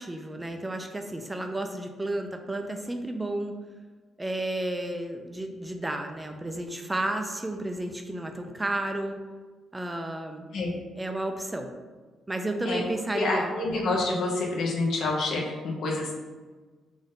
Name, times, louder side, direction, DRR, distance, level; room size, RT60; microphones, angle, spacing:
voice 1, 0.0-3.5 4.2-9.2 9.7-10.5 11.0-11.7 12.3-13.5, right 1 dB, 15° right, 5 dB, 0.4 m, -32 dB
voice 2, 13.1-16.1, left 2 dB, 70° left, -2 dB, 0.9 m, -27 dB
3.7 x 2.6 x 3.7 m, 1.4 s
cardioid pair, 90°, 0 cm